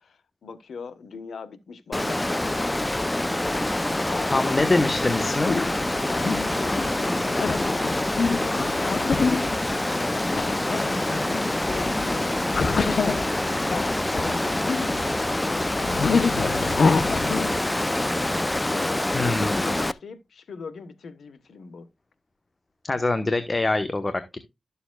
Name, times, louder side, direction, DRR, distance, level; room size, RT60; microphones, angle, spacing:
voice 1, 0.0-3.5 3.9-5.2 6.1-9.2 9.8-21.9, left 5 dB, 85° left, 1.1 m, -40 dB
Water, 1.9-19.9, left 1 dB, 20° left, 0.5 m, -26 dB
voice 2, 4.3-5.6 19.1-19.6 22.8-24.4, left 2 dB, 35° left, 1.1 m, -24 dB
sound 1, 4.8-17.6, left 4 dB, 70° left, 0.8 m, -28 dB
12.5 x 7.0 x 2.3 m
cardioid pair, 60°, 0 cm